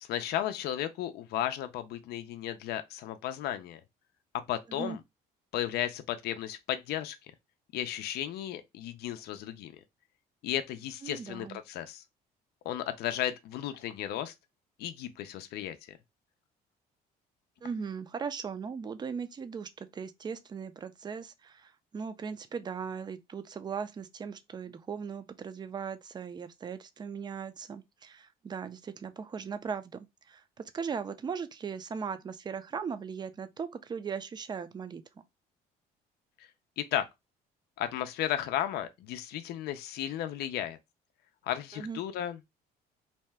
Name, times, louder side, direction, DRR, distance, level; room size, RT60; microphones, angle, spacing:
voice 1, 0.0-3.8 4.5-5.0 5.5-7.2 7.7-9.7 10.4-12.0 12.7-14.3 14.8-16.0 36.8-37.1 37.8-40.8 41.4-42.4, left 11 dB, 70° left, 0.4 m, -34 dB
voice 2, 11.0-11.6 17.6-35.0 41.7-42.0, right 6 dB, 25° right, 0.4 m, -38 dB
2.7 x 2.2 x 3.2 m
cardioid pair, 110°, 17 cm